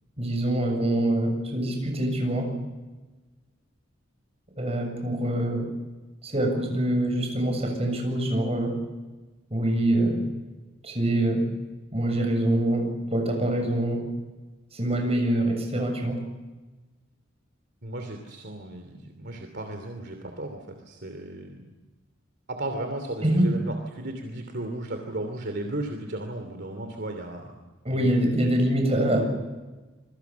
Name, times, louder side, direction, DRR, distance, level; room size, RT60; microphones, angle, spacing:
voice 1, 0.2-2.5 4.6-5.7 6.2-8.7 9.5-10.3 10.8-11.5 11.9-14.0 14.7-16.2 23.2-23.5 27.8-29.2, right 1 dB, 30° right, 3 dB, 7.4 m, -25 dB
voice 2, 17.8-21.7 22.5-27.5 27.9-28.2, right 1 dB, 55° right, 5 dB, 2.9 m, -35 dB
27.0 x 23.0 x 7.1 m, 1.2 s
head